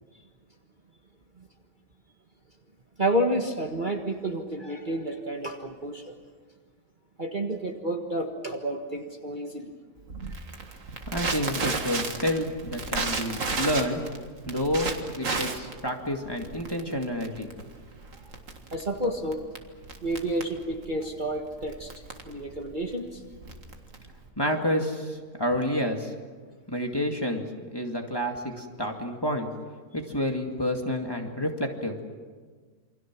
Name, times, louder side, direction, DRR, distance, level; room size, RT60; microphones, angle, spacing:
voice 1, 3.0-6.2 7.2-9.7 13.3-13.4 18.1-18.3 18.7-19.4 20.0-21.9 22.2-23.2, right 1 dB, 30° right, 3 dB, 1.6 m, -30 dB
Crackle, 10.1-24.3, right 4 dB, 55° right, 2.1 m, -34 dB
voice 2, 11.1-14.0 14.5-17.5 24.4-26.1 26.7-27.5 27.7-29.5 29.9-32.0, equal, 15° left, 2 dB, 2.1 m, -29 dB
28.0 x 25.0 x 6.2 m, 1.5 s
omnidirectional pair, 1.7 m